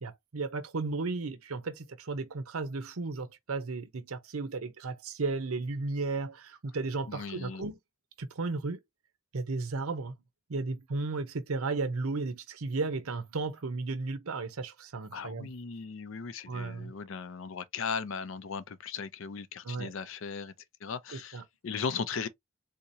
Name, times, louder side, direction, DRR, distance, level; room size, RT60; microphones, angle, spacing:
voice 1, 0.0-7.8 8.2-8.8 9.3-10.1 10.5-15.5 16.5-16.9 19.6-19.9 21.1-21.4, right 3 dB, 90° right, 0.7 m, -34 dB
voice 2, 7.1-7.7 15.1-20.5 20.8-22.3, left 5 dB, 65° left, 0.5 m, -37 dB
3.7 x 2.8 x 2.7 m
head